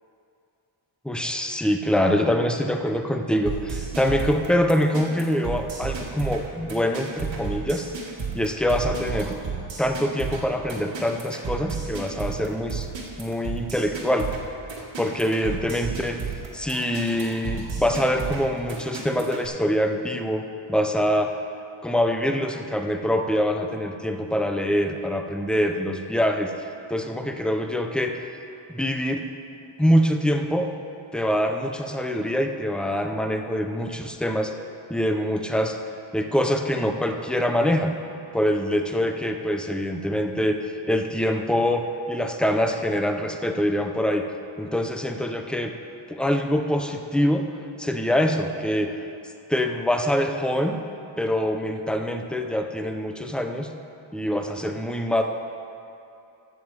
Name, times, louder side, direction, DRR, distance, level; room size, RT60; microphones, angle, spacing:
voice 1, 1.1-7.9 8.3-9.4 9.8-12.9 13.2-14.3 15.0-16.2 16.5-21.4 21.8-28.3 28.7-29.2 29.8-30.7 31.1-34.5 34.9-35.8 36.1-37.9 38.3-44.3 44.6-45.7 46.1-47.5 47.8-49.0 49.5-50.8 51.2-53.7 54.1-55.2, equal, ahead, 5 dB, 0.6 m, -24 dB
sound 1, 3.5-19.5, right 5 dB, 65° right, 1.8 m, -33 dB
14.5 x 7.4 x 4.8 m, 2.7 s
wide cardioid pair, 130°, 49 cm